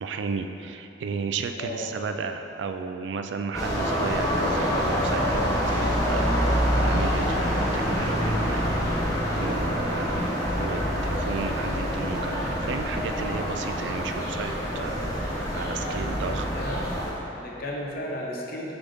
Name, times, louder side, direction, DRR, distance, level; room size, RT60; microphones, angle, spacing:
voice 1, 0.0-8.7 9.4-10.3 10.6-16.5, right 5 dB, 75° right, 7 dB, 0.3 m, -34 dB
sound 1, 3.5-17.1, equal, 20° left, 1.0 m, -26 dB
voice 2, 15.8-17.0 17.3-18.7, left 1 dB, 55° left, -1 dB, 0.8 m, -35 dB
6.7 x 4.0 x 3.6 m, 3.0 s
head